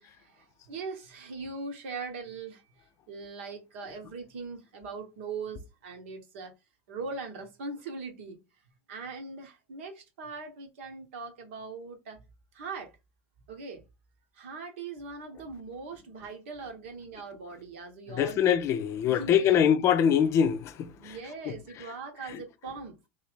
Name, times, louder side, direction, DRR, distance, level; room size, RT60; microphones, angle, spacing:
voice 1, 0.0-2.6 3.1-6.5 6.9-8.4 8.9-12.2 12.5-12.9 13.5-13.8 14.3-18.6 19.1-19.7 21.0-22.9, right 4 dB, 75° right, 1.2 m, -40 dB
voice 2, 18.1-21.2 21.5-21.6, left 8 dB, 45° left, 0.5 m, -24 dB
3.3 x 2.7 x 3.5 m
hypercardioid pair, 90°, 7 cm